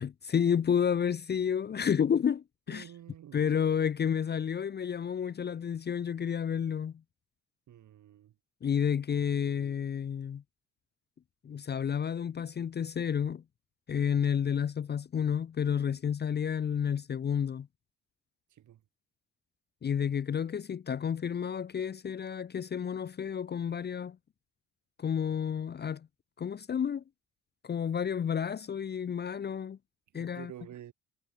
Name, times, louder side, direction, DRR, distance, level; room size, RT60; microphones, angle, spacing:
voice 1, 0.0-2.8 3.3-7.0 8.6-10.4 11.4-13.4 13.9-17.7 19.8-24.2 25.0-26.1 26.4-27.0 27.6-29.8 30.1-30.5, left 8 dB, 35° left, 0.6 m, -30 dB
voice 2, 2.7-3.5 7.7-8.4 18.5-18.8 30.1-30.9, right 11 dB, 75° right, 5.9 m, -50 dB
cardioid pair, 90°, 30 cm